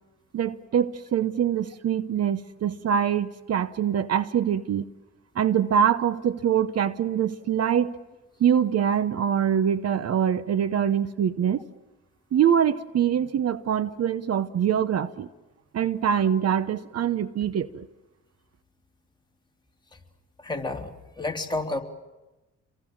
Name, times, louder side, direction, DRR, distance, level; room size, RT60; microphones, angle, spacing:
voice 1, 0.3-4.8 5.3-8.0 8.4-11.6 12.3-15.3 15.7-17.8, right 9 dB, 55° right, 1.0 m, -24 dB
voice 2, 20.4-21.8, left 2 dB, 15° left, 3.1 m, -30 dB
29.0 x 23.0 x 7.3 m
cardioid pair, 90°, 30 cm